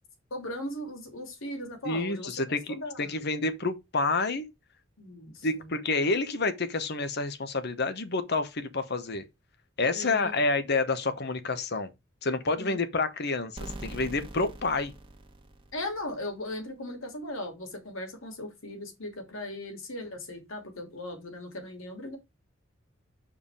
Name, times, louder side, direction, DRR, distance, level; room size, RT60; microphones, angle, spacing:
voice 1, 0.3-3.2 5.0-5.7 9.9-10.3 12.6-12.8 15.7-22.2, left 1 dB, 85° left, 2.8 m, -38 dB
voice 2, 1.8-4.5 5.4-9.2 9.8-11.9 12.2-14.9, left 3 dB, 55° left, 1.1 m, -29 dB
sound 1, 13.6-16.3, right 1 dB, 25° right, 1.3 m, -43 dB
7.1 x 5.0 x 4.8 m
head